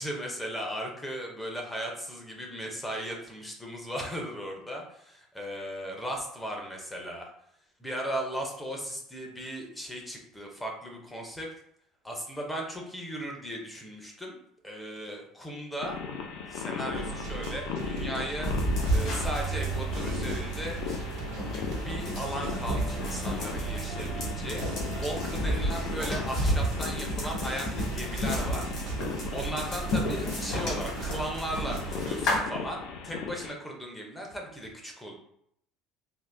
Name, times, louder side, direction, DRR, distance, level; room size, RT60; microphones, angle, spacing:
voice 1, 0.0-7.3 7.8-11.5 12.0-14.4 14.6-16.0 16.5-21.1 21.5-28.6 29.3-35.1, equal, 5° left, 1 dB, 0.5 m, -37 dB
sound 1, 15.8-33.5, left 6 dB, 65° left, 0.4 m, -38 dB
sound 2, 16.9-32.2, right 6 dB, 55° right, 0.3 m, -39 dB
sound 3, 18.4-32.4, equal, 45° left, 1.0 m, -32 dB
3.4 x 2.5 x 2.5 m, 0.72 s
cardioid pair, 175°, 0 cm